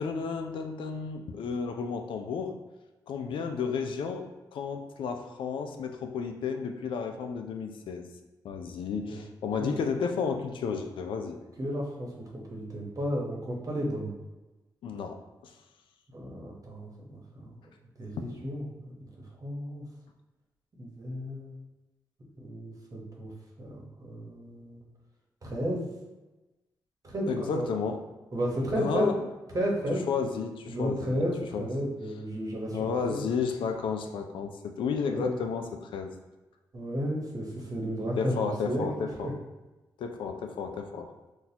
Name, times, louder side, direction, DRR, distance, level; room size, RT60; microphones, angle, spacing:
voice 1, 0.0-2.6 3.1-8.0 8.4-11.4 14.8-15.5 27.3-28.0 28.8-29.2 29.9-31.2 31.5-31.7 32.7-36.1 38.1-39.3 40.0-41.1, left 6 dB, 80° left, 5 dB, 0.4 m, -32 dB
voice 2, 11.6-14.1 16.1-17.5 18.0-18.7 19.4-19.8 20.8-21.6 22.4-23.3 23.6-24.8 25.4-25.9 27.0-27.7 28.3-29.1 29.5-30.0 30.7-33.2 35.0-35.3 36.7-38.9 39.2-39.3, equal, 45° right, -2 dB, 1.0 m, -33 dB
4.0 x 2.3 x 2.8 m, 1.1 s
cardioid pair, 60°, 8 cm